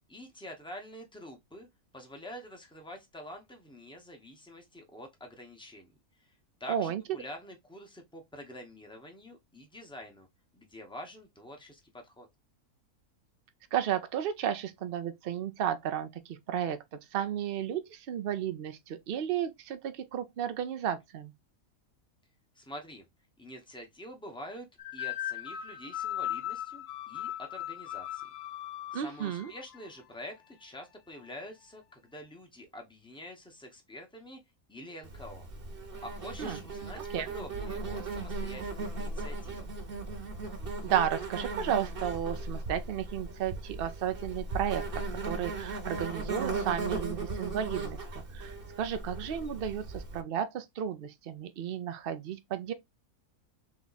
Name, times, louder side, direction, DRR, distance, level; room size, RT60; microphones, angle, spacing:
voice 1, 0.1-1.7 1.9-5.9 6.2-10.3 10.5-12.3 22.5-23.1 23.4-24.7 24.9-28.2 28.9-34.4 34.7-35.5 36.0-39.7, left 1 dB, 5° left, 0.7 m, -47 dB
voice 2, 6.7-7.0 13.7-16.8 17.1-21.3 28.9-29.5 36.4-36.6 37.1-37.3 40.8-52.7, right 9 dB, 75° right, 0.5 m, -33 dB
sound 1, 24.8-29.9, left 12 dB, 70° left, 0.6 m, -38 dB
Insect, 35.0-50.2, right 3 dB, 40° right, 1.1 m, -37 dB
3.5 x 3.1 x 4.0 m
omnidirectional pair, 1.6 m